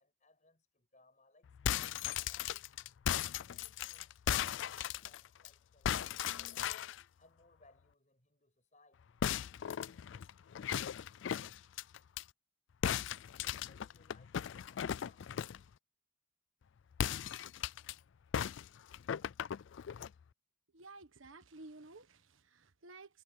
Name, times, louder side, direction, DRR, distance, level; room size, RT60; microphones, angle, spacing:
voice 1, 0.0-2.8 3.1-6.9 7.2-9.2 13.7-15.6, left 2 dB, 35° left, 6.4 m, -68 dB
sound 1, 1.5-5.5 5.9-7.0 9.2-12.2 12.8-15.7 16.9-17.9 18.3-20.1, left 9 dB, 70° left, 0.3 m, -37 dB
voice 2, 20.7-23.2, right 3 dB, 80° right, 1.4 m, -54 dB
head